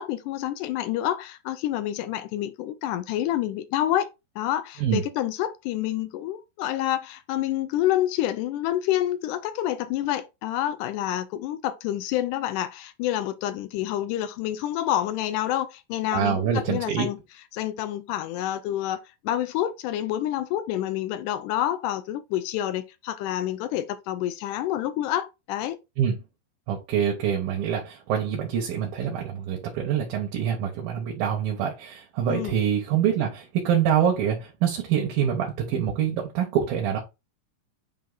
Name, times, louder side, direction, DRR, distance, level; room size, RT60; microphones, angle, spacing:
voice 1, 0.0-4.1 4.4-17.2 17.5-25.8 32.3-32.6, left 12 dB, 75° left, 2.0 m, -28 dB
voice 2, 16.1-17.1 26.0-26.2 26.7-37.0, right 8 dB, 80° right, 3.1 m, -25 dB
8.4 x 2.8 x 4.0 m
omnidirectional pair, 4.1 m